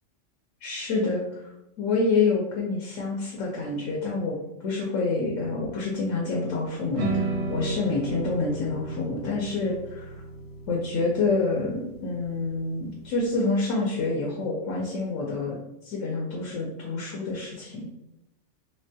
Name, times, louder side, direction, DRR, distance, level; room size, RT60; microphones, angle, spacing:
voice 1, 0.6-1.4 1.8-10.2 10.7-15.6 15.8-17.9, left 3 dB, 85° left, -2 dB, 1.0 m, -27 dB
sound 1, 6.9-13.2, right 2 dB, 80° right, 1.0 m, -34 dB
3.6 x 2.2 x 2.7 m, 0.89 s
omnidirectional pair, 1.3 m